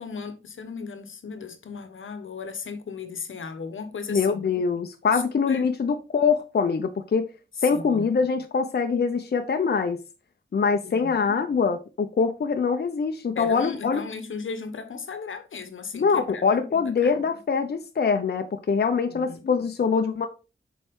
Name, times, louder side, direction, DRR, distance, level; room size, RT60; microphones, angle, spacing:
voice 1, 0.0-4.4 5.1-5.6 7.6-8.1 10.8-11.4 13.3-17.3 19.1-19.6, left 5 dB, 80° left, 1.0 m, -36 dB
voice 2, 4.1-7.3 7.6-10.0 10.5-14.0 15.9-20.3, left 5 dB, 55° left, 0.7 m, -24 dB
6.8 x 4.6 x 3.6 m
wide cardioid pair, 70°, 20 cm